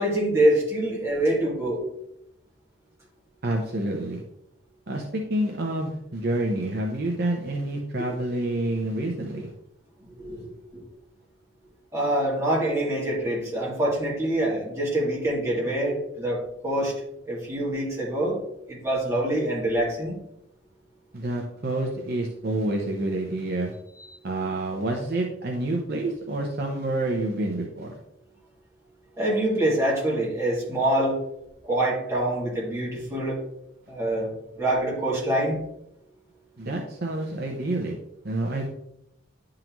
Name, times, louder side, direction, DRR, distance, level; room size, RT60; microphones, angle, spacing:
voice 1, 0.0-1.8 10.1-10.8 11.9-16.9 17.3-18.4 18.7-20.2 29.2-31.2 31.6-33.4 33.9-35.6, right 1 dB, 15° right, -5 dB, 2.0 m, -25 dB
voice 2, 3.4-4.2 4.9-9.5 21.1-23.7 24.2-28.0 36.6-37.9 38.2-38.7, right 1 dB, 50° right, 1 dB, 0.8 m, -28 dB
10.5 x 3.8 x 3.0 m, 0.82 s
head